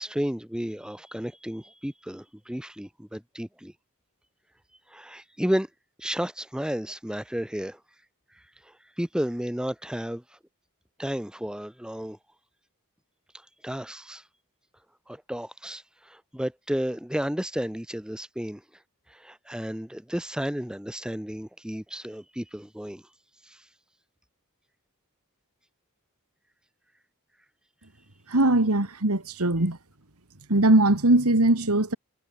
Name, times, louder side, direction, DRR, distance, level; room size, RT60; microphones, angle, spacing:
voice 1, 0.0-3.7 4.9-5.7 6.0-7.8 8.6-10.2 11.0-12.2 13.6-14.2 15.1-18.6 19.1-23.0 23.5-23.6, equal, 5° right, 0.9 m, -32 dB
voice 2, 28.3-29.8 30.5-32.0, right 1 dB, 80° right, 2.5 m, -21 dB
head